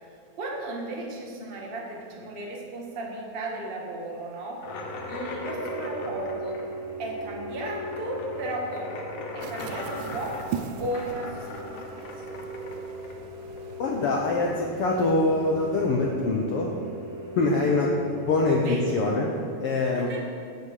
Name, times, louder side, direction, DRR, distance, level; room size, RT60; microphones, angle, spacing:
voice 1, 0.3-6.6 7.0-8.9 9.3-10.4 10.8-12.2 17.4-17.8 18.5-18.9 19.9-20.2, right 1 dB, 30° right, -2 dB, 1.1 m, -35 dB
sound 1, 4.6-14.0, left 3 dB, 65° left, 1.6 m, -39 dB
sound 2, 4.6-19.3, right 2 dB, 60° right, 2.5 m, -39 dB
sound 3, 9.4-15.9, right 8 dB, 80° right, 2.0 m, -41 dB
voice 2, 13.8-16.7 17.4-18.0 18.2-19.3 19.6-20.1, left 3 dB, 90° left, -1 dB, 1.2 m, -24 dB
17.0 x 6.9 x 5.0 m, 2.4 s
omnidirectional pair, 3.9 m